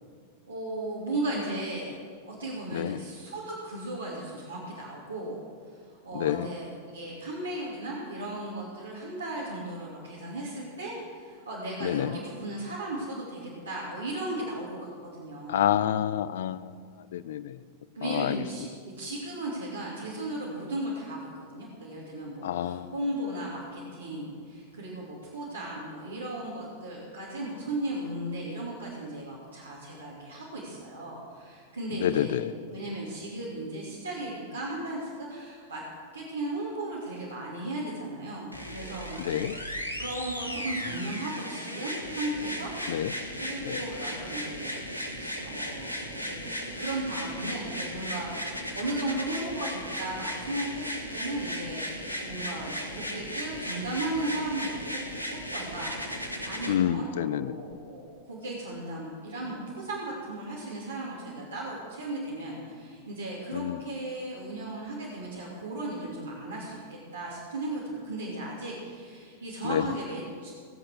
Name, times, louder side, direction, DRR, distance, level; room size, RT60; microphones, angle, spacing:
voice 1, 0.4-2.0 2.3-5.4 5.7-15.7 17.9-18.7 19.0-32.4 32.7-35.8 36.1-42.7 43.4-44.9 45.2-55.0 55.5-56.0 56.4-70.5, right 1 dB, 75° right, -7 dB, 2.7 m, -36 dB
voice 2, 6.1-6.5 11.8-12.2 15.5-17.6 18.0-18.4 22.4-22.9 32.0-32.5 39.2-39.5 42.9-43.1 43.6-43.8 56.7-57.6 63.5-63.8 69.6-69.9, left 11 dB, 60° left, 15 dB, 0.5 m, -28 dB
sound 1, 38.5-56.7 57.7-57.8, equal, 90° left, 1.5 m, -36 dB
19.0 x 7.7 x 6.5 m, 2.1 s
figure-of-eight pair, 90°, 0 cm